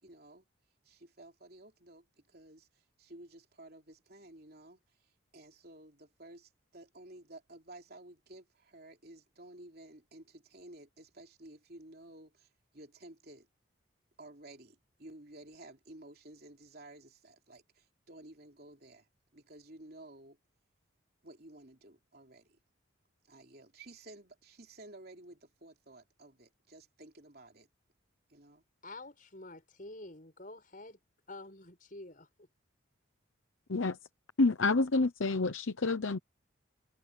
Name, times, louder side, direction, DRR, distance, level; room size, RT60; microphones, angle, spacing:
voice 1, 0.0-0.4 0.8-2.7 3.0-4.8 5.3-13.5 14.2-19.1 19.3-20.4 21.2-22.6 23.3-27.7 28.3-28.6, right 1 dB, 50° right, 3.3 m, -53 dB
voice 2, 28.8-31.0 31.3-32.5, left 2 dB, 45° left, 5.8 m, -48 dB
voice 3, 34.4-36.2, left 3 dB, 80° left, 0.9 m, -28 dB
head